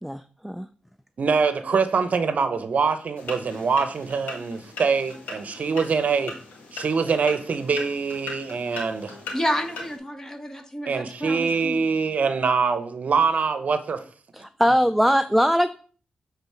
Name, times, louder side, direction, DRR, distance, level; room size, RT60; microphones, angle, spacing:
voice 1, 0.0-0.7 14.3-15.7, equal, ahead, 0.4 m, -21 dB
voice 2, 1.2-6.3 6.7-9.1 10.9-14.0, right 5 dB, 60° right, 0.8 m, -24 dB
sound 1, 3.2-10.0, left 3 dB, 85° left, 1.8 m, -39 dB
voice 3, 9.3-11.7, equal, 20° left, 1.4 m, -30 dB
8.1 x 3.9 x 4.7 m
supercardioid pair, 45°, 3 cm